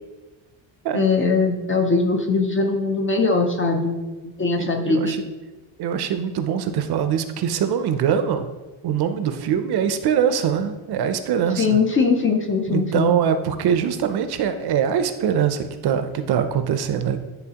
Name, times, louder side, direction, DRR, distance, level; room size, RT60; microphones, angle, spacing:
voice 1, 0.9-3.9 4.4-5.2 11.6-13.1, left 4 dB, 30° left, 4 dB, 0.4 m, -21 dB
voice 2, 4.6-5.2 5.8-8.5 8.8-11.8 12.7-17.2, right 8 dB, 55° right, 9 dB, 0.5 m, -23 dB
9.9 x 4.0 x 2.8 m, 1.2 s
cardioid pair, 170°, 48 cm